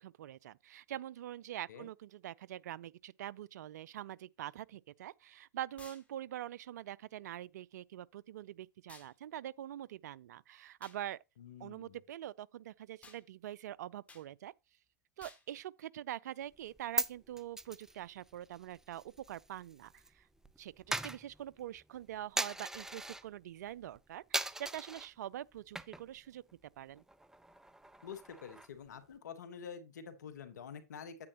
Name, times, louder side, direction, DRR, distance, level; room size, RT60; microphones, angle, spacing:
voice 1, 0.0-11.2 11.6-14.5 15.2-20.3 20.6-26.4 26.8-27.0, right 12 dB, 80° right, 0.4 m, -44 dB
sound 1, 5.8-6.1 8.9-9.1 10.8-11.0 13.0-13.2 14.1-14.3 15.2-15.5, left 3 dB, 15° left, 2.3 m, -55 dB
voice 2, 11.4-12.0 28.0-31.3, left 7 dB, 85° left, 1.3 m, -48 dB
Coin (dropping), 16.5-20.1 20.3-23.3 23.7-24.0 24.3-25.1 25.6-26.2 26.5-26.6 27.0-28.9, right 1 dB, 5° right, 0.6 m, -40 dB
9.6 x 8.6 x 2.9 m
hypercardioid pair, 100°, 9 cm